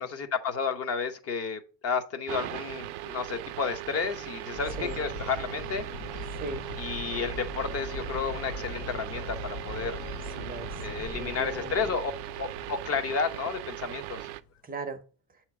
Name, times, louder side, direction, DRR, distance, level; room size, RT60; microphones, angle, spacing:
voice 1, 0.0-5.8 6.8-10.0 10.8-12.1 12.4-14.3, left 5 dB, 35° left, 0.8 m, -32 dB
sound 1, 2.3-14.4, right 16 dB, 70° right, 0.5 m, -39 dB
sound 2, 4.5-14.3, left 1 dB, 85° left, 0.9 m, -40 dB
voice 2, 6.3-6.7 10.4-10.8 11.2-11.8 14.6-15.0, right 2 dB, 20° right, 0.6 m, -37 dB
7.2 x 3.0 x 4.6 m
cardioid pair, 145°, 40 cm